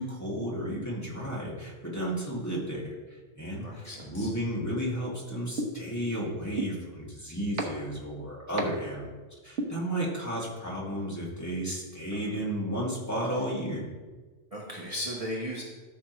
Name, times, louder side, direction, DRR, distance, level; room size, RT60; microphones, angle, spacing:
voice 1, 0.0-9.2 9.4-13.8, equal, 15° left, -5 dB, 2.1 m, -33 dB
voice 2, 3.6-4.3 12.1-12.4 14.5-15.6, equal, 30° right, -4 dB, 1.2 m, -37 dB
sound 1, 5.6-5.7 6.6-6.7 7.6-7.7 8.6-8.7 9.6-9.7, right 3 dB, 80° right, 1.5 m, -28 dB
13.5 x 6.3 x 3.1 m, 1.3 s
omnidirectional pair, 1.2 m